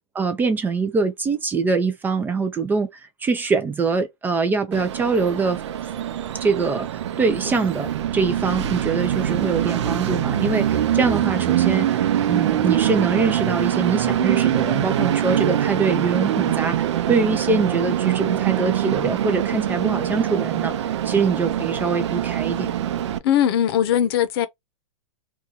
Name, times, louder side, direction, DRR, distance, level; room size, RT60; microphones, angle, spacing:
voice 1, 0.1-5.6 6.4-6.9 7.2-11.9 12.3-22.7, right 4 dB, 10° right, 0.4 m, -23 dB
Train, 4.7-23.2, right 11 dB, 70° right, 0.6 m, -23 dB
voice 2, 23.2-24.5, left 10 dB, 55° left, 0.7 m, -19 dB
2.7 x 2.3 x 3.8 m
hypercardioid pair, 135°, 15 cm